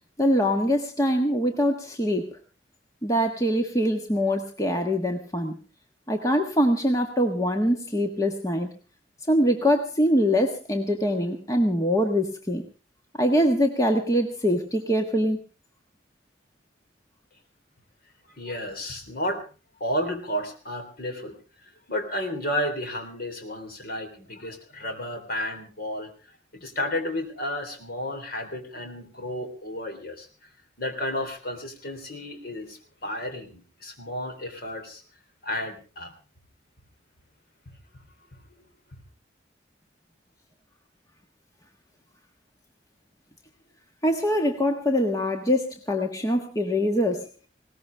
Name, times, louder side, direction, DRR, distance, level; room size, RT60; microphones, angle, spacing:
voice 1, 0.2-2.3 3.0-5.6 6.1-8.7 9.3-12.6 13.2-15.4 44.0-47.3, equal, 20° left, 3 dB, 1.5 m, -23 dB
voice 2, 18.4-19.4 19.8-21.4 21.9-26.1 26.5-30.3 30.8-35.0 35.4-36.1 38.6-38.7, left 1 dB, 55° left, 6 dB, 3.6 m, -32 dB
20.0 x 18.5 x 3.5 m, 0.34 s
head